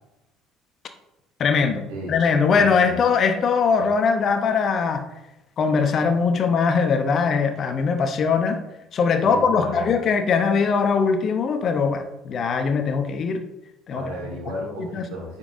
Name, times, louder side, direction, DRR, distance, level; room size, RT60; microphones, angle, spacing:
voice 1, 1.4-5.0 5.6-8.6 8.9-13.4 13.9-14.0 14.8-15.1, left 5 dB, 45° left, 8 dB, 0.8 m, -21 dB
voice 2, 2.5-3.0 9.2-9.9 13.9-15.4, equal, 65° right, -3 dB, 2.7 m, -34 dB
9.6 x 5.5 x 2.6 m, 0.94 s
figure-of-eight pair, 55°, 0 cm